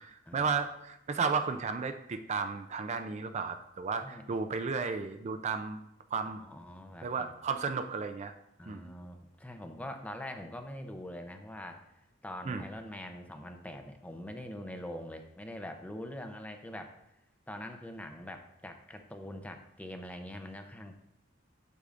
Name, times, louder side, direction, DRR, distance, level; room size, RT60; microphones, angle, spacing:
voice 1, 0.0-5.8 6.1-6.4 7.0-8.3 8.7-8.9 12.5-12.7, right 5 dB, 35° right, 7 dB, 0.4 m, -33 dB
voice 2, 4.0-4.3 6.4-7.3 8.6-17.0 17.5-21.0, left 1 dB, 5° left, 5 dB, 0.6 m, -44 dB
8.3 x 8.0 x 2.5 m, 0.81 s
head